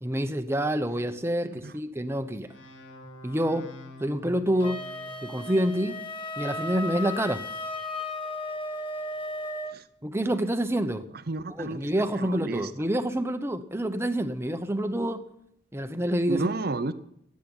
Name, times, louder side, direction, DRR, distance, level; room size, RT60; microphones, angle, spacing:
voice 1, 0.0-2.5 3.2-3.7 4.0-4.8 5.2-6.0 6.4-7.4 10.0-11.1 11.6-15.2 15.7-16.5, right 1 dB, 15° right, 0.9 m, -27 dB
sound 1, 2.4-6.1, equal, 75° left, 2.0 m, -47 dB
Wind instrument woodwind instrument, 4.6-9.8, left 1 dB, 25° left, 1.2 m, -35 dB
voice 2, 11.3-11.9 12.1-12.7 16.3-16.9, right 3 dB, 50° right, 0.7 m, -32 dB
17.0 x 8.5 x 8.9 m
head